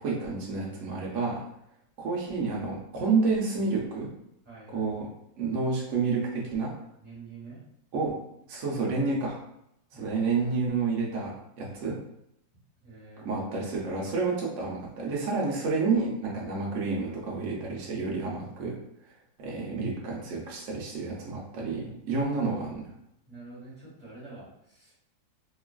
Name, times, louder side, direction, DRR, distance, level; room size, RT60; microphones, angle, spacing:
voice 1, 0.0-1.4 2.0-4.1 4.7-5.1 5.4-6.7 7.9-8.2 8.5-9.4 9.9-12.0 13.2-18.8 19.4-22.9, right 4 dB, 65° right, -3 dB, 0.8 m, -29 dB
voice 2, 4.4-4.9 7.0-7.6 9.9-10.2 12.8-13.3 23.3-25.0, right 3 dB, 25° right, -13 dB, 1.4 m, -47 dB
3.0 x 2.3 x 2.3 m, 0.77 s
omnidirectional pair, 1.9 m